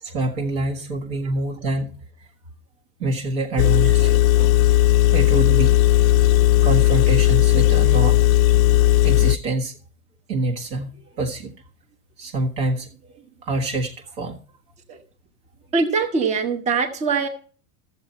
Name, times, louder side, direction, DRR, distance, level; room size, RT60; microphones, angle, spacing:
voice 1, 0.0-1.9 3.0-4.2 5.1-5.8 6.6-8.2 9.0-9.8 10.3-10.9 11.2-11.5 12.2-12.9 13.4-14.4, right 2 dB, 45° right, 1 dB, 1.6 m, -25 dB
Engine, 3.6-9.4, left 14 dB, 70° left, 0.5 m, -16 dB
voice 2, 15.7-17.3, right 4 dB, 15° right, 6 dB, 0.9 m, -23 dB
14.0 x 7.3 x 4.2 m, 0.42 s
supercardioid pair, 175°, 42 cm